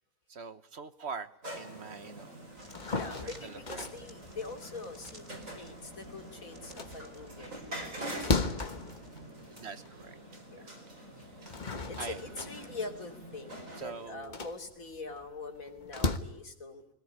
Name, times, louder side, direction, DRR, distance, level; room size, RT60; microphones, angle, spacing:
voice 1, 0.3-2.3 3.2-3.9 5.4-5.6 9.5-10.2 10.6-10.7 12.0-12.4 13.8-14.4, right 5 dB, 55° right, 12 dB, 1.3 m, -43 dB
sound 1, 1.4-14.1, right 1 dB, 70° right, 5.6 m, -46 dB
sound 2, 2.6-6.2 6.5-10.1 10.5-10.6 11.2-16.2, left 3 dB, 35° left, 1.4 m, -36 dB
sound 3, 2.6-9.3, equal, 20° right, 3.3 m, -57 dB
voice 2, 2.8-8.8 10.5-10.7 11.9-16.8, left 3 dB, 80° left, 4 dB, 3.3 m, -44 dB
22.0 x 17.5 x 9.6 m, 0.88 s
omnidirectional pair, 1.4 m